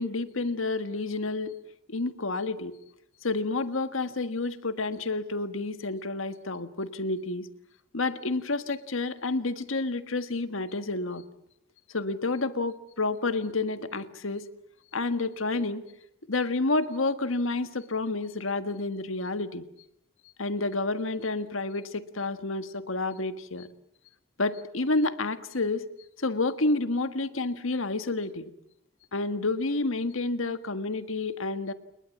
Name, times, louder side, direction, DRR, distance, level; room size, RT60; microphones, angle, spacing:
voice 1, 0.0-1.5 1.9-2.8 3.2-7.5 7.9-11.2 11.9-14.4 14.9-15.8 16.3-19.6 20.4-23.7 24.4-25.9 26.2-28.5 29.1-31.7, left 3 dB, 80° left, 11 dB, 1.6 m, -29 dB
30.0 x 20.0 x 7.3 m, 0.77 s
head